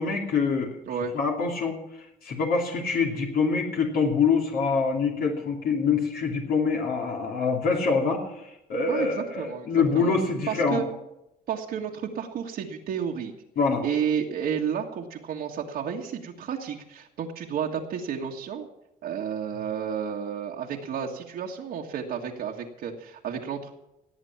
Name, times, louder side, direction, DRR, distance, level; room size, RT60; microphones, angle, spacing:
voice 1, 0.0-0.8 1.1-1.8 2.2-10.8 13.6-13.8, left 5 dB, 60° left, 0 dB, 2.8 m, -25 dB
voice 2, 8.9-9.7 9.9-10.2 10.5-10.9 11.5-13.3 13.8-18.7 19.0-23.7, right 7 dB, 65° right, -1 dB, 1.7 m, -31 dB
17.5 x 8.1 x 7.3 m, 0.88 s
cardioid pair, 110°, 17 cm